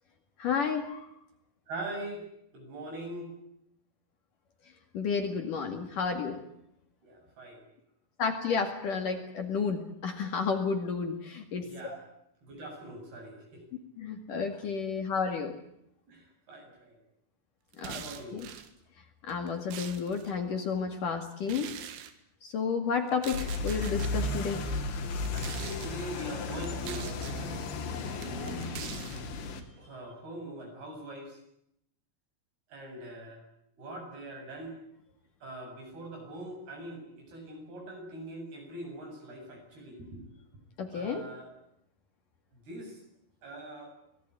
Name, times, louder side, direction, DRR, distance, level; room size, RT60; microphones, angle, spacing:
voice 1, 0.4-1.1 4.9-6.4 8.2-12.0 14.0-15.5 17.8-18.0 18.3-18.5 19.2-21.7 22.4-24.6 40.8-41.3, left 5 dB, 50° left, 5 dB, 3.3 m, -31 dB
voice 2, 1.7-2.3 2.5-3.3 7.0-7.7 11.6-12.0 12.4-13.6 16.1-17.0 17.8-18.4 25.3-27.6 28.1-28.6 29.8-31.4 32.7-33.4 33.8-34.8 35.4-40.3 40.9-41.5 42.5-43.0 43.4-43.9, right 1 dB, 55° right, 2 dB, 9.8 m, -42 dB
sound 1, 17.7-18.7 19.3-20.3 21.4-22.1 23.1-24.1 25.1-25.9 26.6-27.4 28.2-29.2, right 9 dB, 90° right, 4.3 m, -43 dB
sound 2, 23.3-29.6, left 3 dB, 75° left, 5.1 m, -34 dB
25.5 x 19.0 x 9.8 m, 0.77 s
omnidirectional pair, 5.3 m